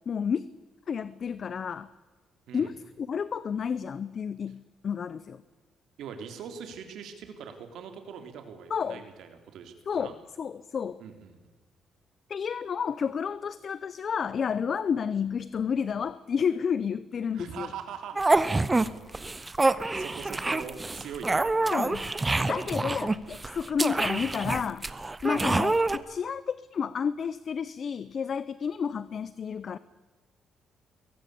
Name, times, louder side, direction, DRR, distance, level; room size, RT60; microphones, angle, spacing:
voice 1, 0.1-0.5 0.9-1.9 2.5-5.4 8.7-9.0 9.9-11.0 12.3-17.7 21.7-22.1 22.4-24.9 25.2-29.8, left 7 dB, 50° left, 16 dB, 0.7 m, -31 dB
voice 2, 6.0-10.1 11.0-11.3 17.3-18.2 19.2-19.3 19.6-21.7 22.3-22.7 25.3-25.5, right 7 dB, 80° right, 7 dB, 3.7 m, -42 dB
sound 1, 18.2-18.9 19.1-26.0, right 2 dB, 20° right, 1.1 m, -26 dB
22.5 x 17.5 x 8.6 m, 1.3 s
cardioid pair, 90°, 0 cm